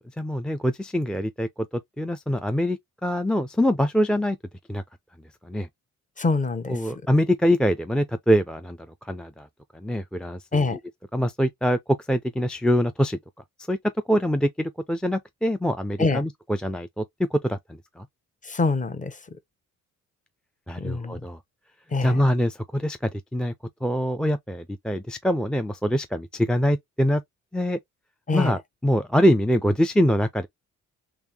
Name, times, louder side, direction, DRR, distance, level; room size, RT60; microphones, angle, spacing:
voice 1, 0.2-1.5 2.0-4.4 4.7-4.8 5.5-5.7 6.7-8.8 9.1-9.5 9.8-10.4 11.1-11.8 12.1-13.2 13.7-13.8 14.1-17.0 17.3-17.6 18.0-18.1 20.7-21.4 22.0-23.5 23.8-27.2 27.5-27.8 28.3-30.5, equal, 5° left, 0.3 m, -24 dB
voice 2, 6.2-6.9 10.5-10.8 16.0-16.2 18.4-19.2 20.8-21.2 21.9-22.2 28.3-28.6, left 3 dB, 25° left, 0.8 m, -25 dB
3.6 x 3.4 x 2.8 m
cardioid pair, 90°, 30 cm